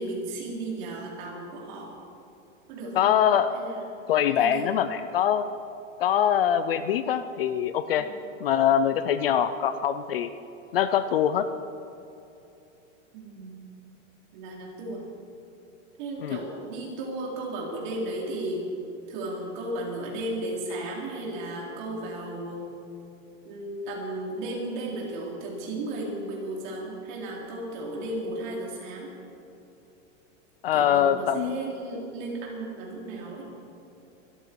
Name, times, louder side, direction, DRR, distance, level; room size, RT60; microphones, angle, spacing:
voice 1, 0.0-1.9 2.7-3.1 3.5-3.8 4.3-4.9 8.0-8.2 13.1-13.6 14.3-15.0 16.0-18.6 19.1-22.7 23.4-29.1 30.7-33.5, right 1 dB, 40° right, -3 dB, 4.1 m, -34 dB
voice 2, 2.9-3.5 4.1-5.5 6.0-8.1 8.4-10.3 10.7-11.5 16.2-16.4 30.6-31.6, left 9 dB, 45° left, 12 dB, 0.6 m, -23 dB
23.0 x 13.5 x 4.7 m, 2.9 s
supercardioid pair, 175°, 39 cm